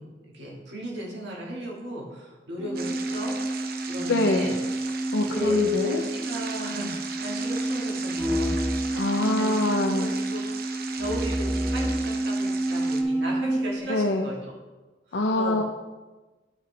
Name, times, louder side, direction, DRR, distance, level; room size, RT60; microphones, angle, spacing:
voice 1, 0.0-4.5 5.2-8.6 9.1-14.5 15.1-15.6, right 1 dB, 80° right, -4 dB, 2.0 m, -37 dB
sound 1, 2.6-13.8, right 1 dB, 5° right, 0.3 m, -28 dB
sound 2, 2.7-13.0, right 6 dB, 55° right, 0.7 m, -39 dB
voice 2, 4.1-4.5 5.1-6.0 8.9-10.1 13.9-14.3 15.1-15.6, left 2 dB, 90° left, 2 dB, 0.6 m, -25 dB
12.0 x 4.8 x 3.4 m, 1.2 s
head